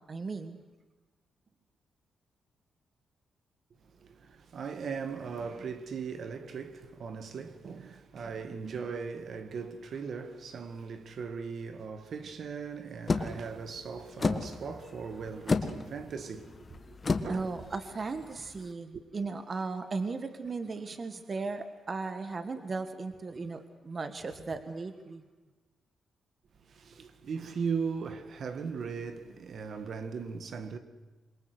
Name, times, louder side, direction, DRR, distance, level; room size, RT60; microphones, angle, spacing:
voice 1, 0.1-0.6 17.3-25.2, right 4 dB, 35° right, 1.6 m, -36 dB
voice 2, 3.8-17.0 17.2-17.6 18.9-19.0 26.6-30.8, right 5 dB, 55° right, 1.9 m, -38 dB
sound 1, 13.1-18.7, left 4 dB, 30° left, 1.5 m, -33 dB
27.0 x 23.0 x 8.1 m
cardioid pair, 130°, 0 cm